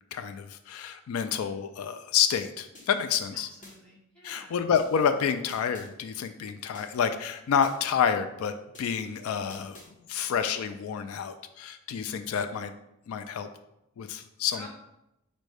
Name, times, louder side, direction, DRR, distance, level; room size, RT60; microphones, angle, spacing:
voice 1, 0.1-3.5 4.2-9.8 10.1-12.7 13.1-13.5 14.0-14.7, left 7 dB, 85° left, 9 dB, 0.3 m, -29 dB
sound 1, 2.7-3.8 4.7-5.9 6.7-7.8 8.7-9.9, left 2 dB, 35° left, 0.9 m, -53 dB
voice 2, 3.3-4.6 14.5-14.7, left 1 dB, 5° left, -4 dB, 1.1 m, -50 dB
5.1 x 2.1 x 4.8 m, 0.87 s
head